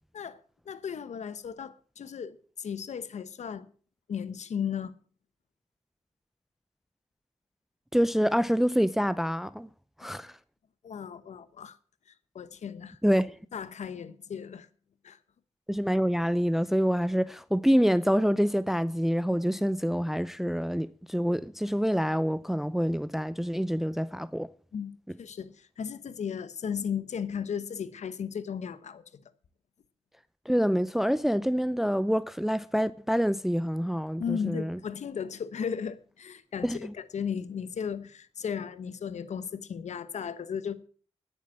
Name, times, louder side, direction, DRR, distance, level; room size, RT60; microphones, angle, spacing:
voice 1, 0.7-3.7 4.1-4.9 10.0-10.1 10.8-11.8 12.3-13.0 13.5-14.7 15.0-15.2 24.7-24.9 25.2-29.0 34.2-40.8, left 7 dB, 80° left, 1.0 m, -35 dB
voice 2, 7.9-9.7 10.0-10.4 13.0-13.4 15.7-24.5 30.5-34.8 36.6-36.9, equal, 5° right, 0.6 m, -26 dB
10.0 x 9.4 x 7.3 m
cardioid pair, 50°, 12 cm